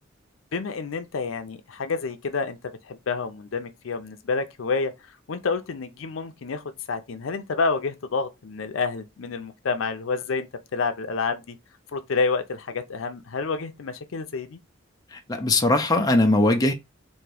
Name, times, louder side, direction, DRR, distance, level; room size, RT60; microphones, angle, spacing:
voice 1, 0.5-4.9 5.3-10.5 10.7-11.6 11.9-14.6, left 4 dB, 80° left, 0.5 m, -29 dB
voice 2, 15.1-16.7, left 2 dB, 20° left, 0.6 m, -20 dB
3.6 x 2.6 x 3.3 m
head